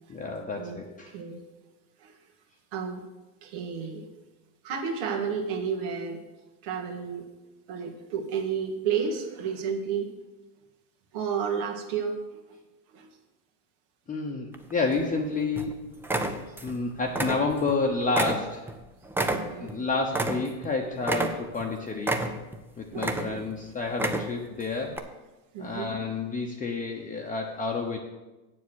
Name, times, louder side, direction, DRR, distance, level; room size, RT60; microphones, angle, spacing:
voice 1, 0.1-1.1 14.1-15.8 16.6-18.6 19.6-22.2 22.8-25.0 25.6-28.0, left 3 dB, 15° left, 0 dB, 0.9 m, -30 dB
voice 2, 1.1-1.4 2.0-2.2 2.7-3.0 3.4-4.1 4.6-6.2 6.6-7.3 7.7-10.1 11.1-12.2 12.9-13.1 19.3-19.7 22.9-23.5 25.5-25.9, right 6 dB, 70° right, 3 dB, 1.9 m, -31 dB
sound 1, 14.5-15.2 15.6-15.7 16.0-16.8 17.1-17.8 18.1-20.7 21.0-21.7 22.0-22.6 22.9-23.5 23.9-24.5 24.9-25.0, right 2 dB, 5° right, 0.4 m, -29 dB
8.1 x 7.3 x 6.3 m, 1.1 s
supercardioid pair, 115°, 47 cm